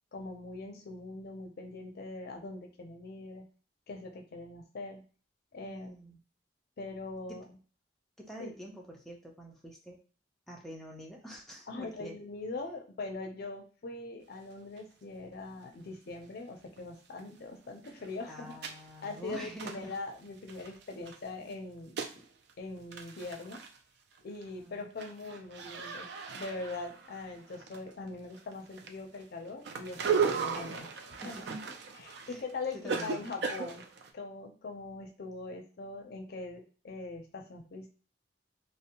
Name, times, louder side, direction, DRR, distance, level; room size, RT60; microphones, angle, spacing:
voice 1, 0.1-3.5 3.9-5.0 5.5-6.0 6.8-7.4 8.4-8.5 11.7-18.6 19.0-22.3 22.6-23.6 24.2-30.9 31.2-31.4 32.0-33.8 34.1-37.9, left 3 dB, 60° left, 3 dB, 0.5 m, -42 dB
voice 2, 5.6-6.2 7.3-7.4 8.2-10.0 10.5-12.2 18.3-20.0 24.6-24.8 31.2-31.6 32.3-32.4 32.7-33.3, equal, ahead, -1 dB, 0.4 m, -46 dB
sound 1, 14.8-14.9 15.3-15.4 16.8-16.9 17.2-17.3 17.6-21.2 21.5-22.2 22.5-22.6 22.8-23.8 24.1-24.5 24.8-28.1 28.3-34.1, right 6 dB, 65° right, 0.4 m, -37 dB
2.6 x 2.0 x 2.8 m, 0.39 s
head